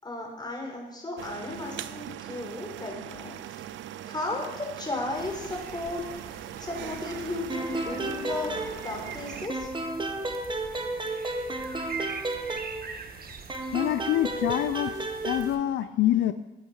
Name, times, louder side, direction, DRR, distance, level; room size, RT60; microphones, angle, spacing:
voice 1, 0.0-3.8 4.0-8.5 8.8-9.7, left 2 dB, 20° left, -1 dB, 5.3 m, -35 dB
sound 1, 1.2-9.5, right 12 dB, 75° right, 0.6 m, -41 dB
sound 2, 5.1-15.6, right 5 dB, 50° right, 1.6 m, -43 dB
sound 3, 7.5-9.2 9.5-13.1 13.5-15.5, right 2 dB, 25° right, 1.7 m, -33 dB
voice 2, 13.7-16.3, left 12 dB, 75° left, 11 dB, 0.6 m, -26 dB
15.0 x 9.5 x 5.7 m, 1.0 s
cardioid pair, 90°, 20 cm